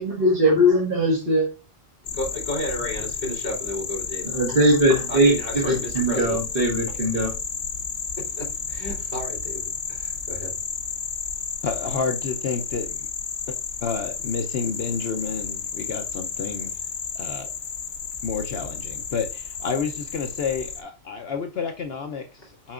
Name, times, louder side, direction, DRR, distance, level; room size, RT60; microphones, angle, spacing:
voice 1, 0.0-1.5 4.3-7.3, equal, 50° right, -4 dB, 1.9 m, -20 dB
sound 1, 2.0-20.8, left 6 dB, 85° left, 1.3 m, -32 dB
voice 2, 2.1-4.3 5.1-6.4 8.2-10.5 22.4-22.5, left 1 dB, 40° left, -4 dB, 3.6 m, -32 dB
voice 3, 11.6-13.1 13.5-16.9 17.1-17.5 18.2-22.7, left 5 dB, 60° left, 5 dB, 0.9 m, -30 dB
7.2 x 5.8 x 2.5 m, 0.31 s
omnidirectional pair, 1.2 m